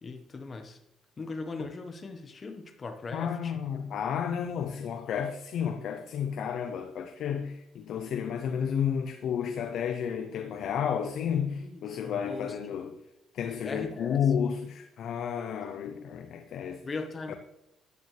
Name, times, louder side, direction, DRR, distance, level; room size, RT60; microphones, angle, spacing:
voice 1, 0.0-0.8 1.2-3.5 11.6-12.6 13.6-14.2 16.8-17.3, left 3 dB, 30° left, 1.3 m, -39 dB
voice 2, 3.1-12.9 13.3-16.8 17.3-17.4, left 8 dB, 65° left, 0.7 m, -31 dB
13.5 x 9.2 x 3.3 m
cardioid pair, 115°, 0 cm